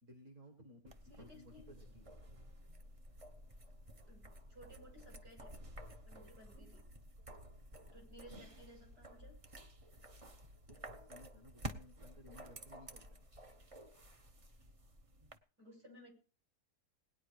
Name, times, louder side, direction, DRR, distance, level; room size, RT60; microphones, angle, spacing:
voice 1, 0.0-2.1 3.6-4.1 10.7-13.2, left 1 dB, 50° right, 4 dB, 2.2 m, -59 dB
sound 1, 0.9-15.4, right 1 dB, 25° right, 0.8 m, -52 dB
voice 2, 1.1-1.7 4.1-5.6 6.0-6.8 7.9-9.4 15.6-16.1, equal, 65° right, 2 dB, 6.2 m, -58 dB
19.0 x 9.8 x 4.9 m, 0.37 s
omnidirectional pair, 1.7 m